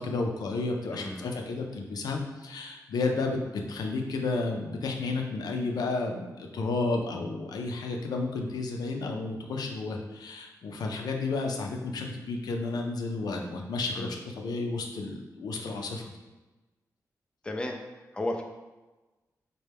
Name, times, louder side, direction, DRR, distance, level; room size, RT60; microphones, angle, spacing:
voice 1, 0.0-16.0, left 3 dB, 85° left, 2 dB, 0.5 m, -32 dB
voice 2, 0.9-1.3 13.9-14.2 17.4-18.4, left 1 dB, 15° left, 3 dB, 0.4 m, -34 dB
4.3 x 2.2 x 3.4 m, 1.1 s
wide cardioid pair, 165°, 7 cm